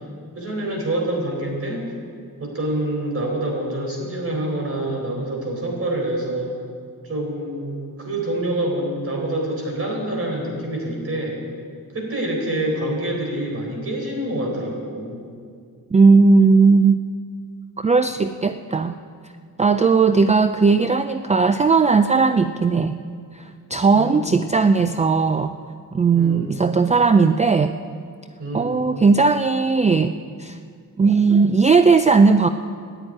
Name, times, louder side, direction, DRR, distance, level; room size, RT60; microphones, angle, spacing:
voice 1, 0.3-1.9 2.4-6.5 7.0-11.4 11.9-15.2 23.9-24.4 26.1-26.5 28.4-28.9, right 1 dB, 40° right, 0 dB, 4.3 m, -26 dB
voice 2, 15.9-17.0 17.8-19.0 19.6-23.0 23.3-25.5 25.9-27.8 28.5-30.1 30.4-30.6 31.0-32.5, right 4 dB, 20° right, 9 dB, 0.4 m, -17 dB
14.0 x 9.0 x 9.8 m, 2.1 s
wide cardioid pair, 135°, 36 cm